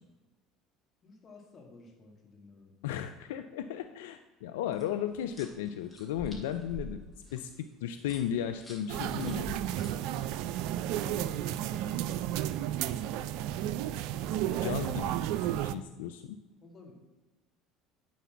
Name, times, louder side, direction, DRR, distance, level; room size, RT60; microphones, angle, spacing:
voice 1, 1.0-2.7 10.5-12.6 14.3-14.8 16.6-16.9, left 3 dB, 40° left, 1 dB, 2.4 m, -53 dB
voice 2, 2.8-7.0 7.3-9.5 14.6-15.1 15.5-16.2, left 10 dB, 75° left, 8 dB, 0.4 m, -35 dB
sound 1, 4.7-10.7 13.2-14.7, right 1 dB, 15° left, 2.6 m, -49 dB
sound 2, 8.9-15.7, right 12 dB, 65° right, 0.3 m, -32 dB
9.4 x 4.2 x 5.8 m, 1.2 s
hypercardioid pair, 70°, 0 cm